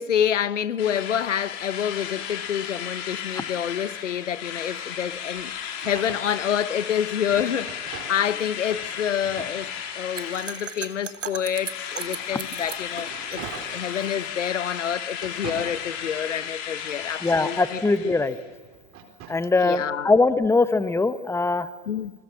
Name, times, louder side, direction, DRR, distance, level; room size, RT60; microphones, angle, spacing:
voice 1, 0.0-13.4 13.7-18.2 19.6-20.1 21.9-22.1, left 9 dB, 75° left, 0.9 m, -28 dB
Drill, 0.8-11.2 11.5-18.4, left 8 dB, 45° left, 3.7 m, -35 dB
sound 1, 5.8-8.4 8.7-10.3 10.9-14.3 14.8-16.4 16.8-19.5, right 7 dB, 35° right, 4.0 m, -44 dB
sound 2, 10.2-14.6, right 7 dB, 75° right, 1.3 m, -37 dB
voice 2, 17.2-18.4 19.3-21.7, left 3 dB, 5° left, 1.0 m, -21 dB
28.0 x 22.0 x 7.4 m
figure-of-eight pair, 85°, 37 cm